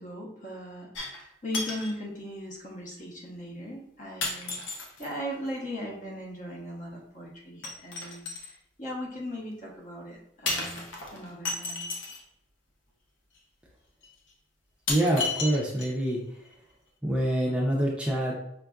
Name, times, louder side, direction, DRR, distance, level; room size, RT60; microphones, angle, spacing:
voice 1, 0.0-8.5 8.8-10.9 11.1-11.9, equal, 45° left, -2 dB, 0.9 m, -38 dB
sound 1, 0.9-1.3 1.5-1.9 2.9-3.0 4.2-5.1 7.6-8.5 10.5-12.2 13.3-13.4 14.0-14.1 14.9-16.1 16.5-16.6, left 3 dB, 90° left, 0.7 m, -33 dB
voice 2, 14.9-16.2 17.0-18.3, right 1 dB, 5° right, -3 dB, 0.5 m, -26 dB
5.1 x 2.4 x 2.3 m, 0.81 s
head